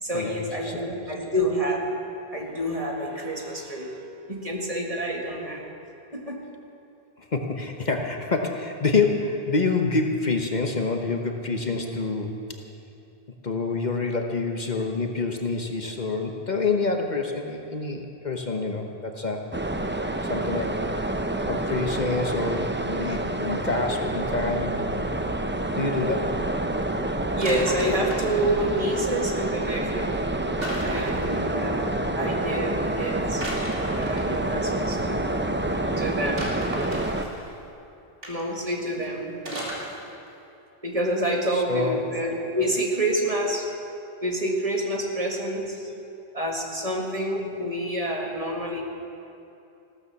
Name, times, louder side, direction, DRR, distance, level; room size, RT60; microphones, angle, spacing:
voice 1, 0.0-1.9 2.3-4.0 4.3-5.6 6.1-6.4 27.4-30.1 30.8-33.5 34.0-36.5 38.3-39.3 39.6-39.8 40.8-43.7 44.2-45.9 46.3-48.8, right 1 dB, 35° right, 0 dB, 1.9 m, -28 dB
voice 2, 7.2-12.6 13.4-19.5 20.3-20.8 21.5-24.8 25.8-26.4 41.5-42.0, left 3 dB, 45° left, 3 dB, 1.1 m, -27 dB
sound 1, 19.5-37.3, right 1 dB, 15° right, 0.6 m, -28 dB
sound 2, 27.4-28.4 30.6-31.3 33.4-34.6 36.4-37.5 38.2-38.5 39.4-40.0 40.3-40.4, right 1 dB, 65° right, 3.0 m, -34 dB
16.0 x 13.0 x 7.0 m, 2.8 s
omnidirectional pair, 1.1 m